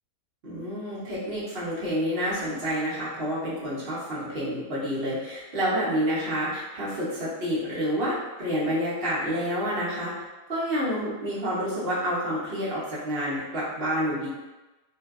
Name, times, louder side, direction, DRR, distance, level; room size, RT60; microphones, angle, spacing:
voice 1, 0.4-14.3, equal, 50° right, -8 dB, 0.8 m, -29 dB
2.6 x 2.1 x 2.3 m, 1.1 s
omnidirectional pair, 1.5 m